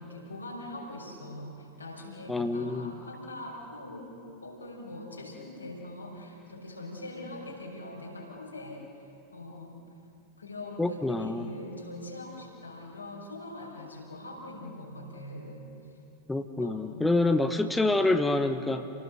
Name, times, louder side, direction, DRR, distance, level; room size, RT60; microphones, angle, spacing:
voice 1, 0.0-4.2 4.4-8.9 9.3-9.8 10.4-15.7 16.6-17.2, left 1 dB, 80° left, -2 dB, 5.8 m, -42 dB
voice 2, 2.3-2.9 10.8-11.5 16.3-18.9, left 2 dB, 5° left, 7 dB, 1.1 m, -27 dB
29.0 x 19.0 x 6.6 m, 2.8 s
figure-of-eight pair, 90°, 0 cm